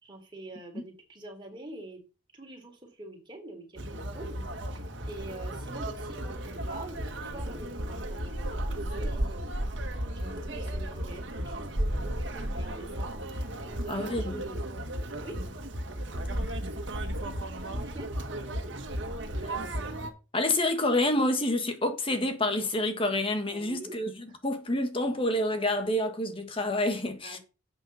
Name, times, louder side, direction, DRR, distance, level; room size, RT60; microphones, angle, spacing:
voice 1, 0.0-2.0 2.3-4.4 4.7-9.4 10.1-14.6 15.2-15.4 17.7-18.1 23.5-24.0 24.3-24.4 27.2-27.4, right 1 dB, 25° right, 3.8 m, -45 dB
Conversation, 3.8-20.1, right 1 dB, 60° right, 1.9 m, -34 dB
voice 2, 13.9-14.4 19.4-19.6 20.3-27.4, left 1 dB, 25° left, 1.6 m, -28 dB
10.5 x 8.2 x 4.3 m
head